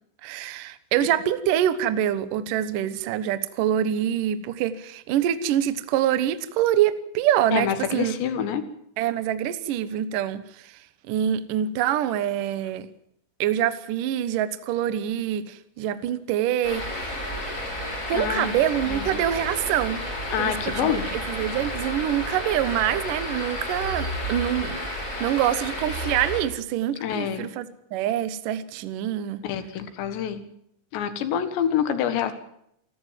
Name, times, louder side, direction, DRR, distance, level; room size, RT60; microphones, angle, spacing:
voice 1, 0.2-8.1 9.0-10.4 11.1-12.8 13.4-17.1 18.1-20.0 20.4-24.8 25.2-27.7 27.9-29.5, right 11 dB, 85° right, 13 dB, 1.9 m, -25 dB
voice 2, 7.5-8.6 18.1-18.5 18.9-19.1 20.3-21.1 27.0-27.5 29.4-30.4 30.9-32.3, left 9 dB, 70° left, 10 dB, 3.6 m, -26 dB
sound 1, 16.6-26.4, left 1 dB, 20° left, 6.4 m, -31 dB
28.0 x 13.5 x 7.5 m, 0.73 s
omnidirectional pair, 5.6 m